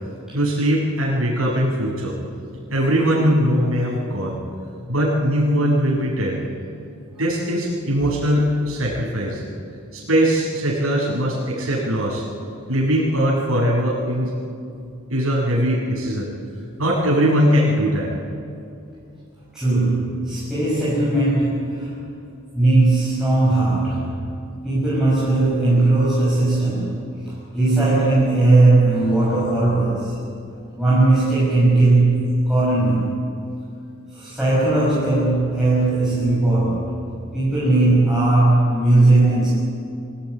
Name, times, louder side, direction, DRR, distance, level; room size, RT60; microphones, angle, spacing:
voice 1, 0.3-2.2 2.7-4.4 4.9-6.4 7.2-9.4 9.9-12.2 12.7-14.3 15.1-16.3 16.8-18.1, equal, 75° right, -5 dB, 7.8 m, -20 dB
voice 2, 19.5-21.9 22.5-24.2 24.6-30.2 30.7-33.2 34.1-37.0 37.3-39.5, right 2 dB, ahead, -9 dB, 6.2 m, -18 dB
26.5 x 16.5 x 9.4 m, 2.6 s
head